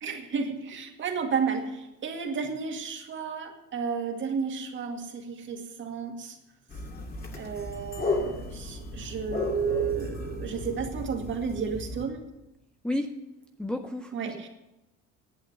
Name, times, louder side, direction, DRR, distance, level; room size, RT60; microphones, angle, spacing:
voice 1, 0.0-6.4 7.4-12.2 14.1-14.5, right 6 dB, 40° right, 4 dB, 2.0 m, -32 dB
sound 1, 6.7-12.0, left 2 dB, 30° left, 2.2 m, -34 dB
voice 2, 13.6-14.5, left 1 dB, 5° left, 4 dB, 0.5 m, -32 dB
11.0 x 8.4 x 9.4 m, 0.94 s
cardioid pair, 135°, 30 cm